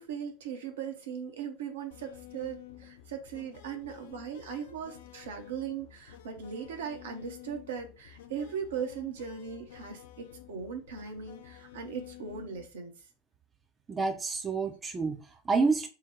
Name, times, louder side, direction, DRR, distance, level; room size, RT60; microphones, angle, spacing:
voice 1, 0.0-12.9, right 7 dB, 65° right, 0.8 m, -39 dB
sound 1, 1.9-12.7, left 12 dB, 60° left, 0.6 m, -51 dB
voice 2, 13.9-15.9, right 4 dB, 20° right, 0.6 m, -29 dB
3.8 x 2.1 x 4.2 m
figure-of-eight pair, 80°, 0 cm